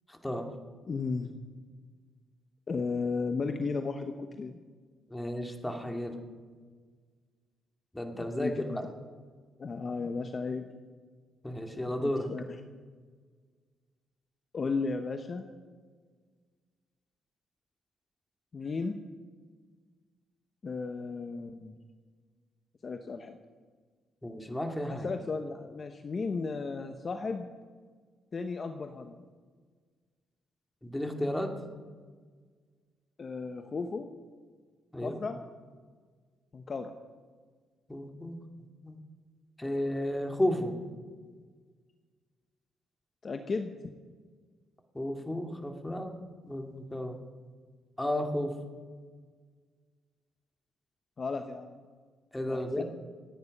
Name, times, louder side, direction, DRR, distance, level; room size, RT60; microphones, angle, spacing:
voice 1, 0.1-0.5 5.1-6.2 7.9-8.8 11.4-12.3 24.2-25.1 30.8-31.5 34.9-35.2 37.9-38.4 38.8-39.0 39.6-40.8 44.9-46.2 46.4-47.2 48.0-48.5 52.3-52.8, left 1 dB, 10° left, 4 dB, 2.4 m, -33 dB
voice 2, 0.9-1.3 2.7-4.6 8.1-8.8 9.6-10.7 11.9-12.4 14.5-15.5 18.5-19.0 20.6-21.7 22.8-23.4 24.9-27.5 28.3-29.2 33.2-34.1 35.0-35.4 36.5-36.9 43.2-43.9 51.2-51.7 52.5-52.8, left 4 dB, 40° left, 7 dB, 1.0 m, -34 dB
27.0 x 9.4 x 5.4 m, 1.5 s
cardioid pair, 90°, 0 cm